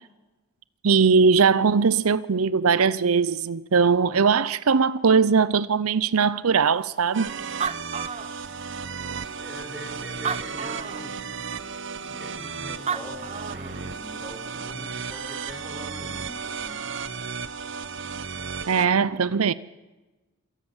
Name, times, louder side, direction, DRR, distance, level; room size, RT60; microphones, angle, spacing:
voice 1, 0.8-7.3 18.7-19.5, right 5 dB, 85° right, 0.6 m, -20 dB
sound 1, 7.1-18.9, right 5 dB, 60° right, 1.1 m, -34 dB
Animal, 7.2-7.3 7.4-8.9 9.5-9.6 10.1-11.1 12.6-12.7 12.9-13.8, right 6 dB, 30° right, 0.7 m, -31 dB
voice 2, 9.3-11.3 12.0-16.9, equal, 5° right, 5.8 m, -42 dB
27.5 x 18.5 x 7.3 m
head